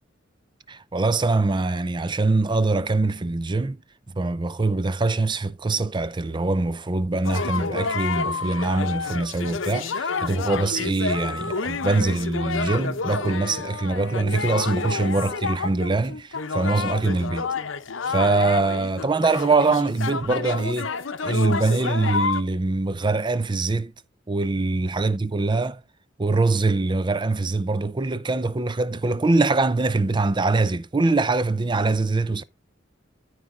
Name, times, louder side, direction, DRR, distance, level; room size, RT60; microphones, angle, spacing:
voice 1, 0.7-3.8 4.1-17.5 18.1-21.0 21.2-23.9 24.3-25.8 26.2-32.4, right 3 dB, 25° right, 0.5 m, -23 dB
sound 1, 7.2-22.4, left 4 dB, 70° left, 0.8 m, -29 dB
13.5 x 4.7 x 3.7 m
head